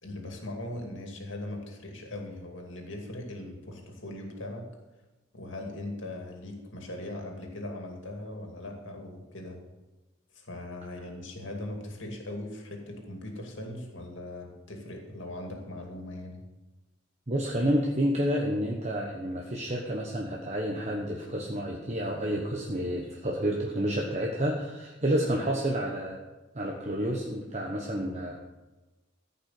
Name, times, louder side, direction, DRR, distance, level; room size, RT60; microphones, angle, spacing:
voice 1, 0.0-4.7 5.3-9.6 10.3-16.4, left 1 dB, 60° left, 2 dB, 2.4 m, -40 dB
voice 2, 17.3-26.2 26.5-28.3, equal, 35° right, 0 dB, 1.1 m, -29 dB
14.5 x 5.6 x 7.8 m, 1.1 s
head